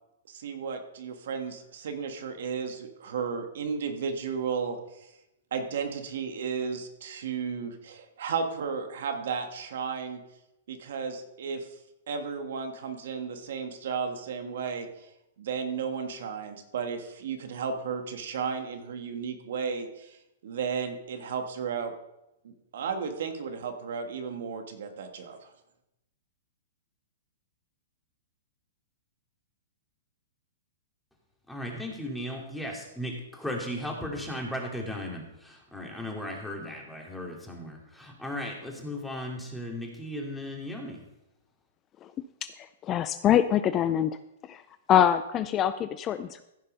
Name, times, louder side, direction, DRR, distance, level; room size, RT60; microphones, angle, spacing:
voice 1, 0.3-5.1 5.5-10.2 10.7-11.7 12.1-15.1 15.4-21.9 22.4-25.5, right 6 dB, 70° right, 6 dB, 1.7 m, -34 dB
voice 2, 31.5-41.0, left 1 dB, 5° left, -1 dB, 2.6 m, -36 dB
voice 3, 42.4-44.2 44.5-44.6 44.9-46.4, left 10 dB, 25° left, 12 dB, 0.5 m, -24 dB
15.0 x 5.6 x 5.4 m, 0.88 s
hypercardioid pair, 130°, 0 cm